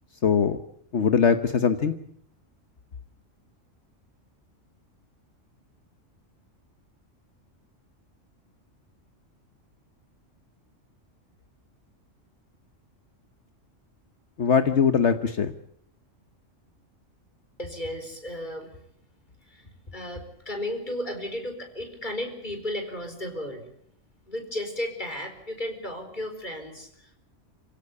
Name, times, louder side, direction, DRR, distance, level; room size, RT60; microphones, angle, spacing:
voice 1, 0.2-0.6 0.9-1.9 14.4-15.5, left 6 dB, 60° left, 10 dB, 1.4 m, -21 dB
voice 2, 17.6-18.7 19.5-23.6 24.3-27.2, left 1 dB, 35° left, 6 dB, 4.5 m, -34 dB
26.5 x 16.5 x 8.5 m, 0.70 s
omnidirectional pair, 1.3 m